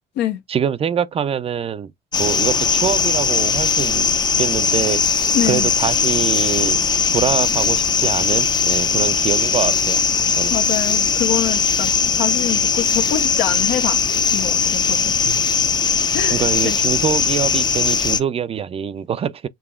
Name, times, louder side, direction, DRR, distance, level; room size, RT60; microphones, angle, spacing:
voice 1, 0.5-1.9 2.2-4.1 4.4-5.0 5.5-6.8 7.1-10.0 10.4-10.5 15.3-15.4 16.3-19.5, right 8 dB, 35° right, 0.4 m, -24 dB
sound 1, 2.1-18.2, left 5 dB, 25° left, 0.5 m, -19 dB
voice 2, 5.3-5.7 10.5-14.0 14.3-15.1 16.1-16.8, left 11 dB, 85° left, 1.0 m, -25 dB
6.9 x 2.9 x 2.3 m
cardioid pair, 110°, 17 cm